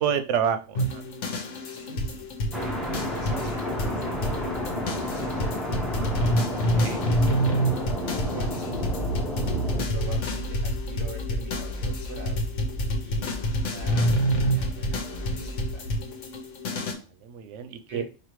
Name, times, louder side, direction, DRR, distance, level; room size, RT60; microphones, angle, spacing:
voice 1, 0.0-1.0 6.7-7.0 16.8-16.9 17.2-18.0, right 8 dB, 85° right, 9 dB, 0.9 m, -28 dB
sound 1, 0.7-16.9, equal, 85° left, 1.2 m, -28 dB
voice 2, 1.9-5.2 6.8-7.1 7.5-7.7 8.0-8.7 9.9-12.5 13.0-15.8 17.9-18.0, right 1 dB, 50° right, 0 dB, 1.6 m, -43 dB
sound 2, 2.5-9.8, left 1 dB, ahead, 0.5 m, -31 dB
Accelerating revving vroom, 8.7-15.9, left 1 dB, 30° right, 0.8 m, -36 dB
5.0 x 2.6 x 3.0 m, 0.33 s
omnidirectional pair, 1.2 m